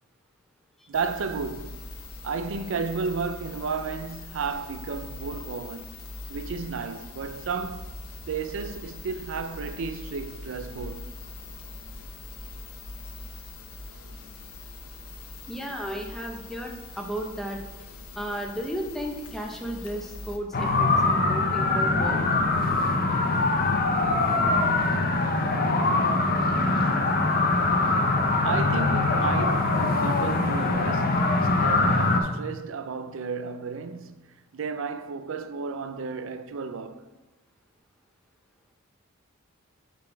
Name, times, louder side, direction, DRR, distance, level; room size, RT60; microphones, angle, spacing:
sound 1, 0.9-20.4, left 2 dB, 90° left, 0.9 m, -42 dB
voice 1, 0.9-1.9 2.2-6.0 6.3-7.9 8.3-11.2 28.4-34.2 34.5-37.1, right 5 dB, 60° right, 0.4 m, -33 dB
voice 2, 15.5-17.6 18.1-22.2, right 1 dB, ahead, 0.7 m, -34 dB
sound 2, 20.5-32.2, left 2 dB, 45° left, 0.6 m, -23 dB
7.3 x 4.0 x 4.5 m
head